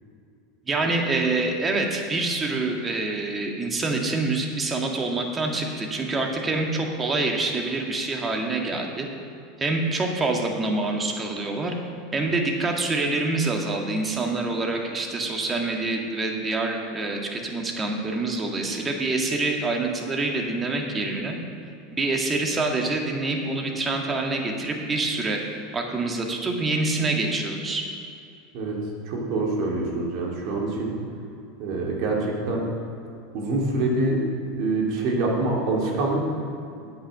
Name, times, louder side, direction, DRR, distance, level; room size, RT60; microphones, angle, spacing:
voice 1, 0.7-9.1 9.6-11.7 12.1-21.4 22.0-25.4 25.7-27.8, right 3 dB, 25° right, 1 dB, 1.8 m, -26 dB
voice 2, 29.1-31.0 31.6-32.6 33.3-34.3 34.6-36.2, right 2 dB, 60° right, -2 dB, 2.8 m, -25 dB
9.3 x 8.1 x 6.0 m, 2.5 s
hypercardioid pair, 90°, 0 cm